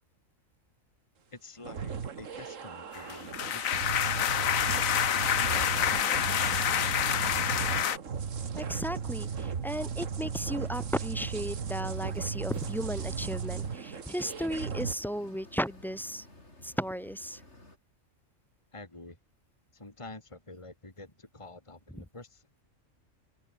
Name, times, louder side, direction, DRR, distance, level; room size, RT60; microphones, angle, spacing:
voice 1, 1.3-7.8 18.7-19.2 19.7-22.6, left 2 dB, 20° left, 2.8 m, -49 dB
sound 1, 1.6-14.9, right 6 dB, 65° right, 1.9 m, -36 dB
sound 2, 2.9-8.0, left 9 dB, 75° left, 1.4 m, -28 dB
voice 2, 8.6-16.3 16.6-17.4, equal, ahead, 0.6 m, -35 dB
sound 3, 11.7-17.8, left 2 dB, 55° left, 6.1 m, -54 dB
omnidirectional pair, 1.4 m